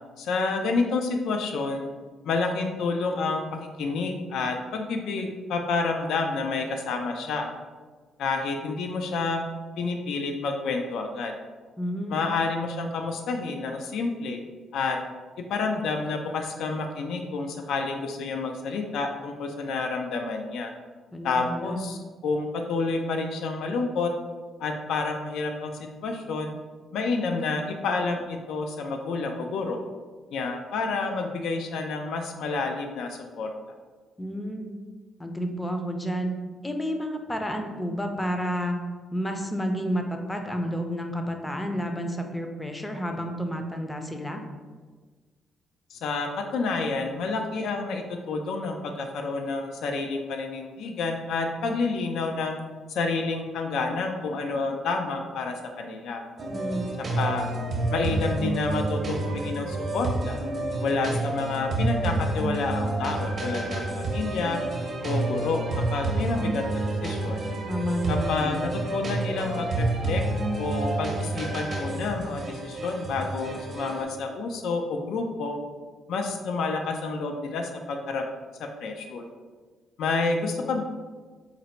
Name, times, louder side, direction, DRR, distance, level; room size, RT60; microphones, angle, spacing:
voice 1, 0.2-1.9 2.2-3.4 3.8-7.5 8.2-9.4 9.8-11.3 12.1-14.4 14.7-15.0 15.4-20.7 21.2-24.1 24.6-25.7 26.0-26.6 26.9-29.8 30.3-33.5 45.9-52.6 52.9-56.2 57.0-57.4 57.9-60.4 60.8-64.6 65.0-67.5 68.1-70.2 70.6-75.6 76.1-78.2 78.6-79.3 80.0-80.8, left 3 dB, 75° left, 4 dB, 0.4 m, -29 dB
voice 2, 11.8-12.3 21.1-21.8 34.2-34.8 35.2-36.3 36.6-38.8 39.1-44.4 56.5-56.9 67.7-68.4, equal, 10° left, 4 dB, 0.5 m, -30 dB
sound 1, 56.4-74.0, right 2 dB, 45° right, 0.8 m, -29 dB
3.9 x 2.1 x 4.3 m, 1.4 s
cardioid pair, 90°, 0 cm